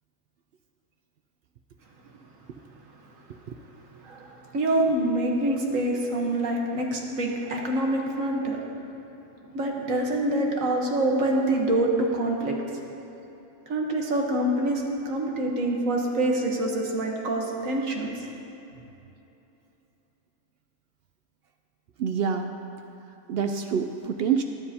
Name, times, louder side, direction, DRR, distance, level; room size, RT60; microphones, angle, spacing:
voice 1, 4.0-8.6 9.5-12.6 13.7-18.1, right 1 dB, 65° right, 0 dB, 1.6 m, -26 dB
voice 2, 22.0-22.5 23.3-24.4, right 7 dB, 80° right, 5 dB, 0.5 m, -26 dB
21.5 x 7.5 x 2.8 m, 3.0 s
omnidirectional pair, 1.6 m